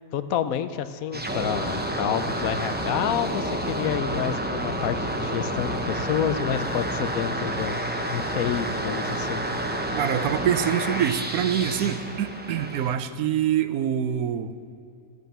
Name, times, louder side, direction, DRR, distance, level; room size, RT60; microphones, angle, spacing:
voice 1, 0.1-7.8 8.1-9.4, left 9 dB, 75° left, 12 dB, 1.1 m, -29 dB
sound 1, 1.1-12.9, right 1 dB, 10° right, 0.7 m, -29 dB
voice 2, 9.9-14.5, right 9 dB, 85° right, 12 dB, 1.1 m, -25 dB
13.5 x 8.4 x 7.3 m, 2.6 s
omnidirectional pair, 1.5 m